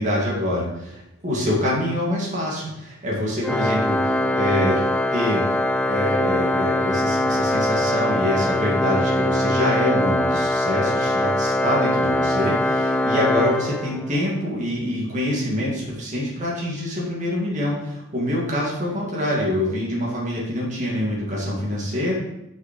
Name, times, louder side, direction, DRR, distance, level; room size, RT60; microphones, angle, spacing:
voice 1, 0.0-4.8 5.1-5.5 5.9-22.1, left 1 dB, 35° right, -4 dB, 2.2 m, -25 dB
Organ, 3.4-14.3, left 1 dB, 5° left, 0.3 m, -22 dB
6.1 x 5.8 x 5.3 m, 0.90 s
head